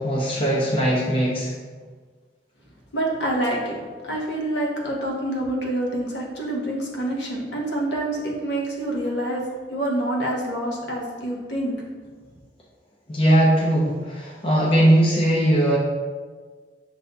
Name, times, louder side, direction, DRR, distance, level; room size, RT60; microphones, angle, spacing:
voice 1, 0.0-1.5 13.1-15.8, right 1 dB, 30° left, -5 dB, 0.5 m, -19 dB
voice 2, 2.9-9.4 9.7-11.8, right 1 dB, 75° left, -2 dB, 0.9 m, -27 dB
7.0 x 2.6 x 2.2 m, 1.5 s
head